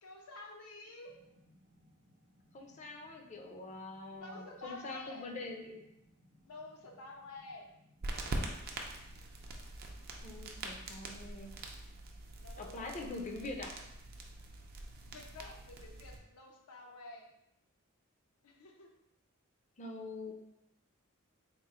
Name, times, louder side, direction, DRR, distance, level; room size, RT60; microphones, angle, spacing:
voice 1, 0.0-1.2 4.1-5.3 6.4-7.7 12.3-12.9 15.0-17.3 18.4-18.9, left 2 dB, 85° left, 1 dB, 0.6 m, -50 dB
sound 1, 1.0-8.2, left 1 dB, 80° right, 0.8 m, -67 dB
voice 2, 2.5-5.8 10.2-11.6 12.6-13.8 19.8-20.3, left 2 dB, 35° left, 2 dB, 0.5 m, -44 dB
sound 2, 8.0-16.2, right 2 dB, 45° right, 0.4 m, -44 dB
3.6 x 2.0 x 4.1 m, 0.83 s
head